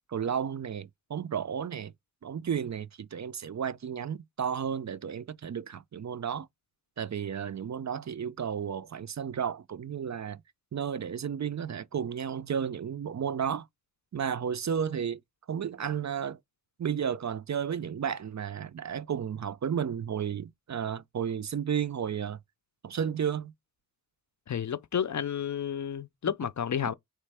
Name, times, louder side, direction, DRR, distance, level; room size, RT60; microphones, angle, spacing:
voice 1, 0.1-1.9 2.2-6.5 7.0-10.4 10.7-13.7 14.1-15.2 15.5-16.4 16.8-22.4 22.8-23.5, right 8 dB, 50° right, 0.4 m, -33 dB
voice 2, 24.5-26.9, left 8 dB, 55° left, 0.5 m, -31 dB
4.2 x 3.2 x 3.3 m
wide cardioid pair, 55°, 36 cm